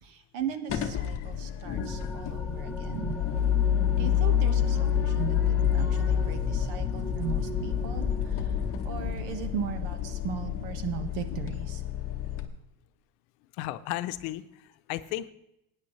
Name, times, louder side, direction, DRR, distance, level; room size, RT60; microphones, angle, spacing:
voice 1, 0.0-3.2 4.0-11.8, right 8 dB, 85° right, 8 dB, 1.5 m, -37 dB
sound 1, 0.7-12.5, left 9 dB, 30° left, 0.9 m, -28 dB
voice 2, 1.1-2.1 8.6-8.7 13.6-15.3, left 15 dB, 80° left, 12 dB, 0.8 m, -36 dB
sound 2, 1.8-9.1, equal, 5° left, 0.8 m, -39 dB
19.5 x 9.6 x 3.2 m, 0.85 s
cardioid pair, 160°, 46 cm